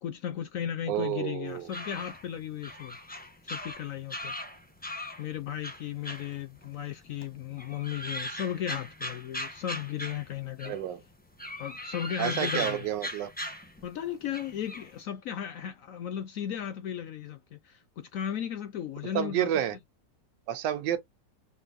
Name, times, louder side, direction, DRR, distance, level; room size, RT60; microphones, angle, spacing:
voice 1, 0.0-3.0 3.5-4.3 5.2-10.7 11.6-12.8 13.8-19.5, left 10 dB, 70° left, 0.8 m, -35 dB
voice 2, 0.9-1.7 10.6-11.0 12.2-13.3 19.1-19.8 20.5-21.0, right 10 dB, 80° right, 1.4 m, -30 dB
sound 1, 1.5-5.2 5.6-6.9 7.2-10.9 11.3-14.0 14.3-14.9, equal, 10° left, 0.5 m, -39 dB
5.2 x 2.6 x 2.4 m
omnidirectional pair, 1.9 m